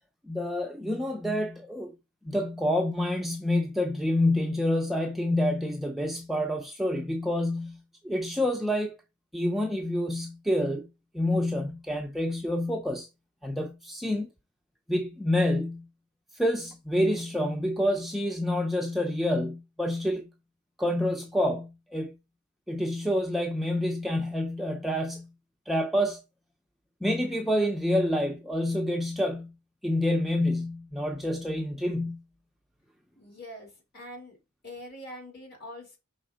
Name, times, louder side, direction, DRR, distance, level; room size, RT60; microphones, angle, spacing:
voice 1, 0.3-2.0 2.2-7.8 8.0-8.9 9.3-10.9 11.1-13.1 13.4-14.3 14.9-15.9 16.3-20.3 20.8-22.1 22.7-25.3 25.7-26.2 27.0-29.5 29.8-32.2, left 1 dB, ahead, 0.5 m, -28 dB
voice 2, 33.2-34.4 34.6-36.0, left 1 dB, 45° left, 2.8 m, -44 dB
5.2 x 3.6 x 5.0 m
head